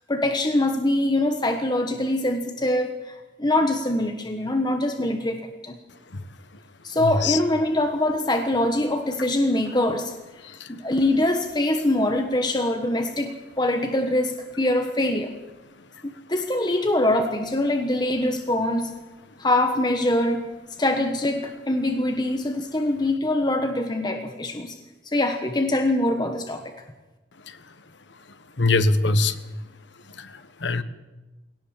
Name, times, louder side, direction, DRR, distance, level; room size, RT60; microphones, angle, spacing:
voice 1, 0.1-5.8 6.8-10.1 10.7-15.3 16.3-18.9 19.4-20.4 20.8-24.8 25.1-26.6, left 1 dB, 25° left, 5 dB, 1.3 m, -23 dB
voice 2, 7.0-7.4 10.4-10.7 27.5-27.6 28.6-29.4 30.2-30.8, left 3 dB, 75° left, 12 dB, 1.3 m, -23 dB
19.5 x 17.5 x 7.5 m, 1.1 s
head